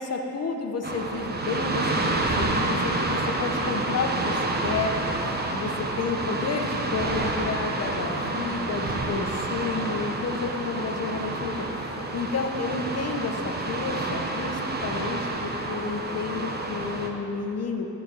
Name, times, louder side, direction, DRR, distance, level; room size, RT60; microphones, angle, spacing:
voice 1, 0.0-4.9 5.5-17.9, left 4 dB, 40° left, 3 dB, 1.1 m, -31 dB
sound 1, 0.8-17.1, right 2 dB, 25° right, 1.0 m, -29 dB
12.5 x 4.6 x 7.1 m, 3.0 s
cardioid pair, 90°, 37 cm